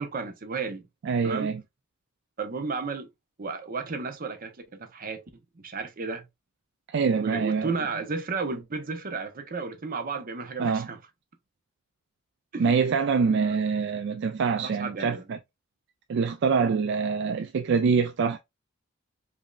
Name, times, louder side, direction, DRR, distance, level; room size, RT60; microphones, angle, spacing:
voice 1, 0.0-0.9 1.2-1.5 2.4-3.1 3.4-5.2 5.6-6.3 7.1-11.0 12.5-12.8 13.2-13.5 14.6-15.2, right 4 dB, 45° right, 0.7 m, -33 dB
voice 2, 1.0-1.6 6.9-7.7 10.6-10.9 12.6-15.4 16.1-18.4, right 5 dB, 60° right, 0.4 m, -25 dB
5.2 x 2.7 x 2.3 m
head